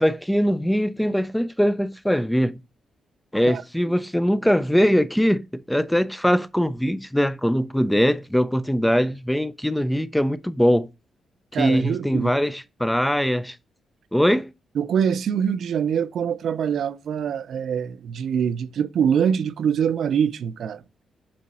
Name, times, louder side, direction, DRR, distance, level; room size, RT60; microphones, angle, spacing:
voice 1, 0.0-2.6 3.3-10.9 11.6-13.6 14.1-14.5, equal, 5° left, 0.3 m, -21 dB
voice 2, 11.5-12.3 14.8-20.8, right 8 dB, 60° right, 0.4 m, -24 dB
7.5 x 4.0 x 4.1 m
wide cardioid pair, 160°, 0 cm